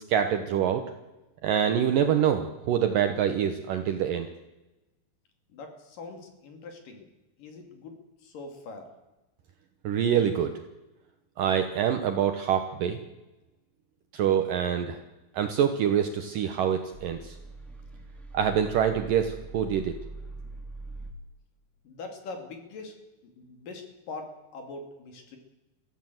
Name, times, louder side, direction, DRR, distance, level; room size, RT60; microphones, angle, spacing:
voice 1, 0.1-0.8 1.4-4.3 9.8-10.5 11.4-13.0 14.1-15.0 15.3-17.4 18.3-19.9, right 8 dB, 90° right, 7 dB, 1.9 m, -25 dB
voice 2, 5.5-7.1 7.4-8.9 21.8-22.9 23.4-25.4, left 3 dB, 50° left, 5 dB, 3.8 m, -42 dB
sound 1, 16.1-21.1, right 2 dB, ahead, 1.7 m, -43 dB
23.0 x 15.5 x 7.8 m, 1.0 s
omnidirectional pair, 5.6 m